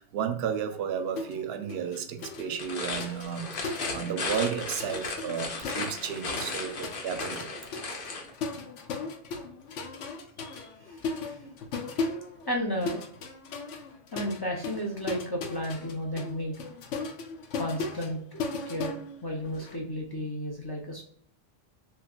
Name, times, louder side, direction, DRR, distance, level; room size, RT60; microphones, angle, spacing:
voice 1, 0.0-7.5, right 8 dB, 65° right, 0.7 m, -33 dB
sound 1, 1.2-1.4 1.7-4.5 4.8-19.8, left 3 dB, 85° left, 1.0 m, -37 dB
sound 2, 2.5-8.3, left 3 dB, 55° left, 0.8 m, -35 dB
voice 2, 10.4-11.4 12.5-13.0 14.1-16.6 17.6-18.4 18.7-21.0, equal, 30° left, 0.4 m, -33 dB
3.2 x 3.2 x 2.3 m
omnidirectional pair, 1.2 m